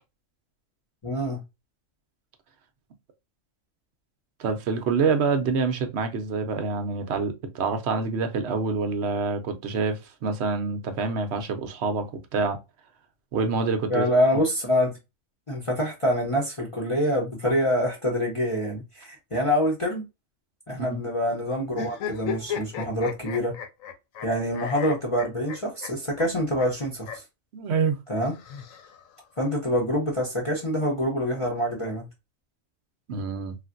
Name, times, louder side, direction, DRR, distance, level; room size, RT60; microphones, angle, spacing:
voice 1, 1.0-1.4 13.9-14.9 15.5-20.0 20.7-23.6 24.2-27.2 28.1-28.4 29.4-32.1, equal, 30° left, 0.7 m, -26 dB
voice 2, 4.4-12.6 13.3-14.0 20.8-21.0 27.5-28.0 33.1-33.5, right 4 dB, 65° right, 0.8 m, -26 dB
sound 1, 21.7-24.3 24.5-25.9 26.2-26.3 26.6-26.7 27.0-27.2 28.2-29.2, left 8 dB, 85° left, 1.1 m, -35 dB
3.3 x 2.4 x 2.4 m
omnidirectional pair, 1.4 m